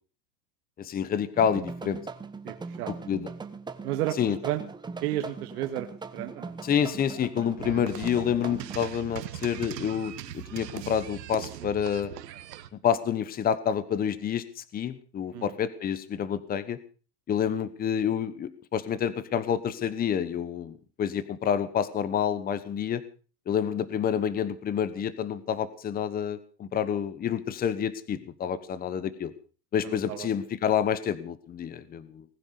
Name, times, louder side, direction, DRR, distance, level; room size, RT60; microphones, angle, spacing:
voice 1, 0.8-2.0 3.1-3.3 4.2-4.4 6.6-12.1 12.8-14.4 14.7-16.8 17.3-23.0 23.5-29.3 29.7-32.2, left 8 dB, 20° left, 15 dB, 1.1 m, -28 dB
sound 1, 1.4-8.9, right 4 dB, 10° right, 1.0 m, -40 dB
voice 2, 2.4-3.1 3.8-4.6 5.0-5.9 6.1-6.5 15.3-15.6 29.8-30.3, right 13 dB, 70° right, 6 dB, 2.0 m, -32 dB
sound 2, 7.6-12.7, right 12 dB, 90° right, 1.8 m, -40 dB
20.0 x 9.9 x 6.6 m, 0.39 s
supercardioid pair, 140°, 48 cm